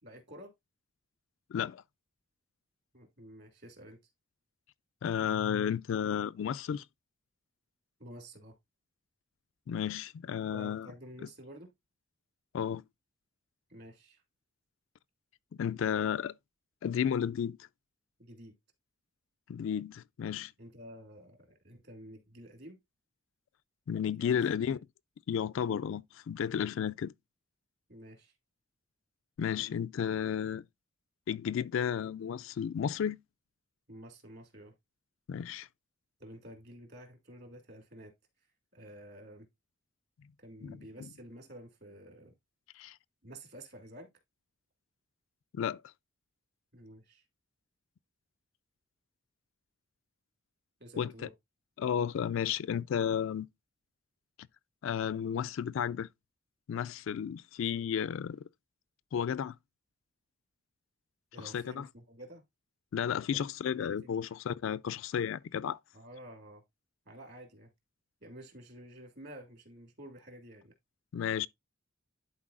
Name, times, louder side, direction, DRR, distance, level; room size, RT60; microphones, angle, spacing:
voice 1, 0.0-0.5 2.9-4.0 8.0-8.5 10.5-11.7 13.7-14.2 18.2-18.6 20.6-22.8 24.2-24.3 24.7-24.8 27.9-28.3 33.9-34.7 36.2-38.1 38.7-39.5 40.4-42.3 43.2-44.1 46.7-47.2 50.8-51.3 61.3-62.4 63.3-63.4 63.8-63.9 65.9-66.6 67.1-67.7 68.2-70.7, right 1 dB, 50° right, 2.1 m, -50 dB
voice 2, 1.5-1.8 5.0-6.8 9.7-10.9 12.5-12.8 15.6-16.3 16.8-17.6 19.5-20.5 23.9-24.8 25.3-27.1 29.4-30.6 31.3-33.2 35.3-35.7 40.6-40.8 42.8-43.0 45.5-45.8 51.0-51.1 51.8-53.5 54.8-56.1 56.7-58.4 59.1-59.5 61.4-61.9 62.9-65.8 71.1-71.5, left 8 dB, 65° left, 0.3 m, -32 dB
11.0 x 4.2 x 2.4 m
head